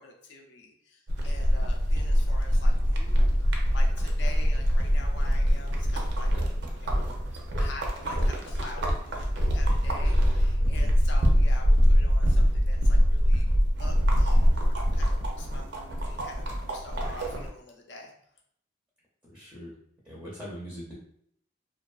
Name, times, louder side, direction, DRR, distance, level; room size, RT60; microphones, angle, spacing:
voice 1, 0.0-7.0 7.6-18.1, left 2 dB, 65° left, 1 dB, 0.5 m, -46 dB
sound 1, 1.1-17.5, equal, 65° right, 0.4 m, -24 dB
voice 2, 19.2-19.7 20.0-20.9, equal, 5° right, -6 dB, 0.5 m, -41 dB
2.4 x 2.3 x 2.3 m, 0.68 s
head